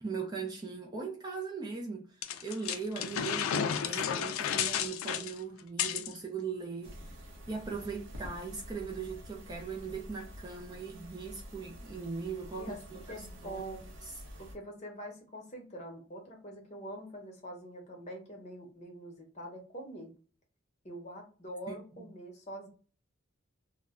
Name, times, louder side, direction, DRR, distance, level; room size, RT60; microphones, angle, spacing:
voice 1, 0.0-7.1 7.5-13.2 13.4-13.6 21.7-22.1, right 5 dB, 20° right, 0.4 m, -39 dB
sound 1, 2.2-6.1, left 8 dB, 90° left, 0.3 m, -32 dB
sound 2, 6.8-14.6, equal, 65° right, 0.7 m, -48 dB
voice 2, 12.5-13.9 14.4-20.1 20.8-22.7, right 1 dB, 35° left, 0.7 m, -44 dB
2.2 x 2.1 x 3.4 m
head